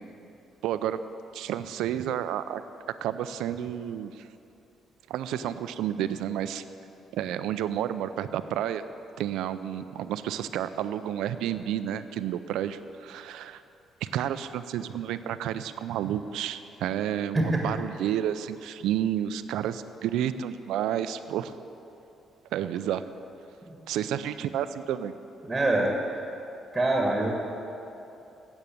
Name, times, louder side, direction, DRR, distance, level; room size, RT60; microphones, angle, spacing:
voice 1, 0.6-1.0 1.3-2.6 3.0-4.1 5.1-6.6 7.1-8.8 9.2-13.6 14.0-21.5 22.5-23.0 23.9-25.1, right 10 dB, 90° right, 12 dB, 0.4 m, -30 dB
voice 2, 17.3-17.8 23.6-23.8 25.4-26.0 26.7-27.3, right 2 dB, 15° right, 0 dB, 1.8 m, -25 dB
9.1 x 7.9 x 8.6 m, 2.9 s
cardioid pair, 90°, 0 cm